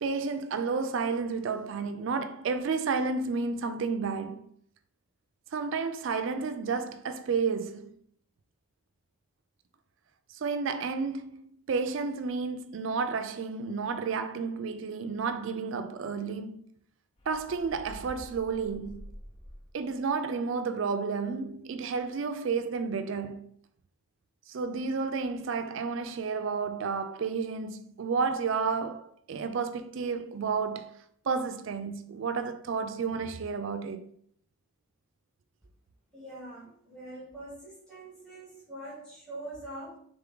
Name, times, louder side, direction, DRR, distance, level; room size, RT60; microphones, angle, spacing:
voice 1, 0.0-4.5 5.5-8.0 10.3-11.4 11.7-16.6 17.3-19.0 19.7-23.5 24.5-30.9 31.3-34.1, right 5 dB, 60° right, 0.4 m, -31 dB
sound 1, 17.2-20.0, equal, 25° left, 0.5 m, -48 dB
voice 2, 36.1-40.0, right 1 dB, 5° left, 1.6 m, -43 dB
3.7 x 3.5 x 3.7 m
head